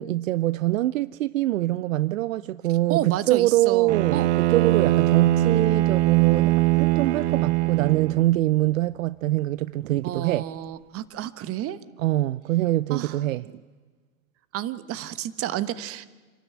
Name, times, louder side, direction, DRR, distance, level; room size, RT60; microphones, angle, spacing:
voice 1, 0.0-10.5 12.0-13.5, right 16 dB, 70° right, 0.6 m, -24 dB
voice 2, 2.9-4.3 10.0-11.8 12.9-13.2 14.5-16.1, right 13 dB, 35° right, 1.2 m, -30 dB
Bowed string instrument, 3.9-8.3, right 16 dB, 55° right, 1.0 m, -21 dB
27.0 x 13.0 x 9.5 m
hypercardioid pair, 110°, 41 cm